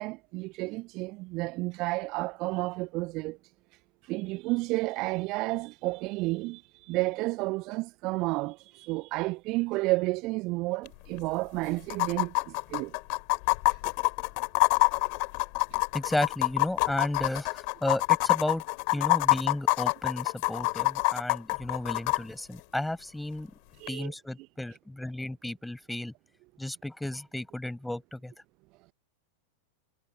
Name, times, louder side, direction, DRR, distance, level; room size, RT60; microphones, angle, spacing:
voice 1, 0.0-3.4 4.1-12.9 23.8-24.1, right 23 dB, 40° right, 0.8 m, -31 dB
sound 1, 10.9-11.0 11.2-11.3 11.9-22.2 23.9-24.0, left 40 dB or more, 45° left, 3.1 m, -26 dB
voice 2, 15.9-18.6 18.9-23.5 23.9-26.1 26.6-28.3, left 1 dB, 5° left, 6.2 m, -33 dB
figure-of-eight pair, 90°, 0 cm